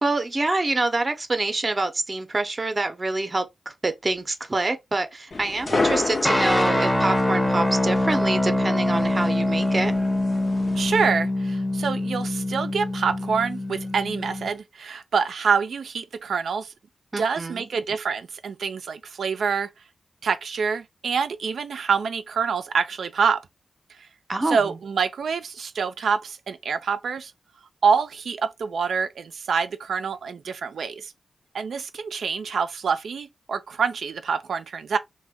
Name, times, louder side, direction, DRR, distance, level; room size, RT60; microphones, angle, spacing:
voice 1, 0.0-9.9 17.1-17.7 24.3-24.8, right 2 dB, 40° right, 0.6 m, -26 dB
sound 1, 5.3-11.1, left 3 dB, 55° left, 0.6 m, -31 dB
sound 2, 6.2-14.5, left 1 dB, 10° left, 0.7 m, -24 dB
voice 2, 10.8-16.7 17.2-19.7 20.2-23.4 24.5-27.3 27.8-31.1 31.5-35.0, right 6 dB, 80° right, 0.3 m, -26 dB
2.6 x 2.2 x 3.4 m
cardioid pair, 45°, 0 cm